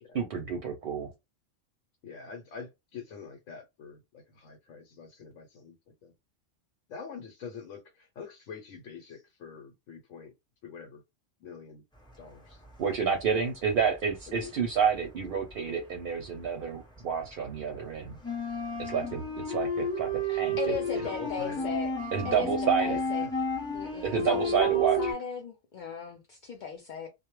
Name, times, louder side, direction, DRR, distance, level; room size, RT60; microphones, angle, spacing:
voice 1, 0.1-1.1 12.8-18.2 18.8-20.7 22.1-23.0 24.0-25.1, right 6 dB, 60° right, 0.7 m, -29 dB
voice 2, 2.0-5.7 6.0-6.1 6.9-10.3 10.6-11.0 11.4-11.8 12.2-12.6 14.3-14.5 21.0-21.7 22.9-23.4, left 6 dB, 85° left, 1.0 m, -45 dB
sound 1, 12.5-13.4 13.7-16.6 16.9-25.1, right 1 dB, 5° left, 0.6 m, -32 dB
voice 3, 20.3-23.3 23.7-27.1, left 6 dB, 60° left, 0.5 m, -37 dB
2.2 x 2.1 x 3.0 m
omnidirectional pair, 1.3 m